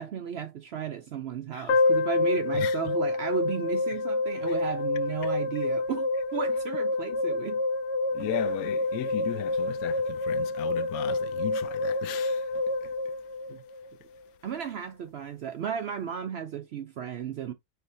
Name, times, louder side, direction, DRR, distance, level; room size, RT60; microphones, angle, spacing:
voice 1, 0.0-7.6 13.5-13.6 14.4-17.5, right 8 dB, 65° right, 0.6 m, -34 dB
sound 1, 1.7-13.9, left 3 dB, 55° left, 1.1 m, -28 dB
voice 2, 8.1-12.4, left 12 dB, 80° left, 1.1 m, -36 dB
4.7 x 3.3 x 2.6 m
omnidirectional pair, 1.5 m